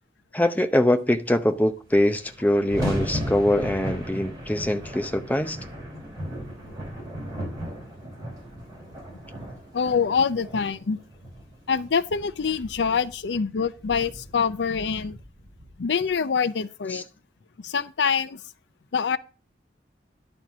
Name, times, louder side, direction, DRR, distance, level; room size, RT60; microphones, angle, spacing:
voice 1, 0.3-5.6 16.9-17.0, left 1 dB, 10° left, 0.7 m, -23 dB
sound 1, 1.5-1.6 1.8-16.2, equal, 20° right, 4.2 m, -36 dB
voice 2, 9.7-11.0 11.7-15.2 15.8-17.0 17.6-18.4 18.9-19.2, left 6 dB, 90° left, 0.5 m, -25 dB
11.0 x 4.4 x 6.0 m
head